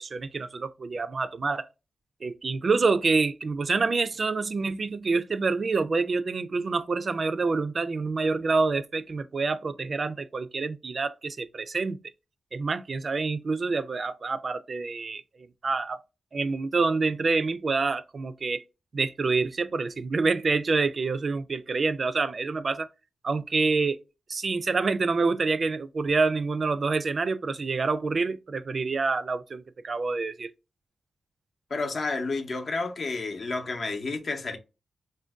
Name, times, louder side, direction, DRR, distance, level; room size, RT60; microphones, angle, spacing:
voice 1, 0.0-1.7 2.2-12.0 12.5-15.2 15.6-16.0 16.3-18.6 18.9-22.9 23.2-24.0 24.3-30.5, right 4 dB, 50° right, 0.3 m, -27 dB
voice 2, 31.7-34.6, left 3 dB, 60° left, 0.6 m, -30 dB
2.5 x 2.1 x 3.4 m
cardioid pair, 75°, 0 cm